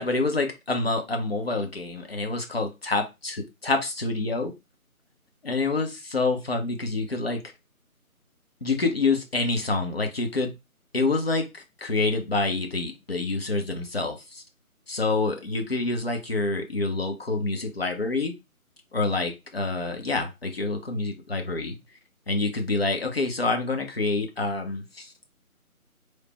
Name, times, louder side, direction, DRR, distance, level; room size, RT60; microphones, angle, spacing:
voice 1, 0.0-4.5 5.4-7.4 8.6-10.5 10.9-14.4 14.9-18.3 18.9-22.0 22.3-25.1, left 3 dB, 45° left, 0.7 m, -27 dB
3.2 x 2.1 x 4.1 m
figure-of-eight pair, 160°, 44 cm